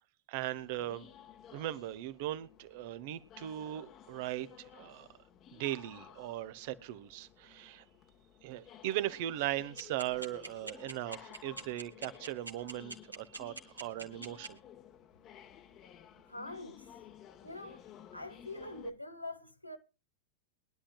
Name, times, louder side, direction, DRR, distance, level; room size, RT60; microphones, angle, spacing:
voice 1, 0.3-1.1 1.5-5.1 5.5-7.8 8.4-14.6, right 14 dB, 50° right, 1.0 m, -38 dB
sound 1, 0.6-18.9, left 10 dB, 30° left, 1.3 m, -55 dB
sound 2, 9.8-14.5, right 3 dB, 80° right, 1.9 m, -42 dB
voice 2, 16.3-16.9 17.4-17.8 18.1-19.8, left 1 dB, 85° left, 1.3 m, -44 dB
23.0 x 11.5 x 2.2 m
figure-of-eight pair, 90°, 0 cm